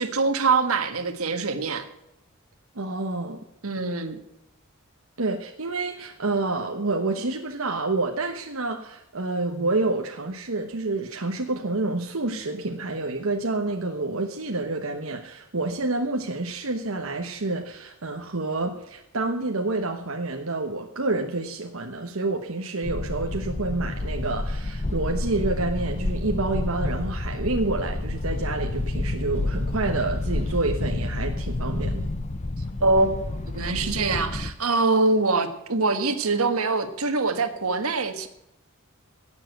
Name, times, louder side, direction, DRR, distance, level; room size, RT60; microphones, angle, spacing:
voice 1, 0.0-1.9 3.6-4.2 32.8-38.3, right 3 dB, 85° right, 8 dB, 1.6 m, -24 dB
voice 2, 2.7-3.4 5.2-32.1, right 2 dB, 70° right, 3 dB, 1.2 m, -28 dB
sound 1, 22.8-34.5, left 2 dB, 35° left, 0.7 m, -29 dB
17.0 x 7.5 x 8.0 m, 0.86 s
head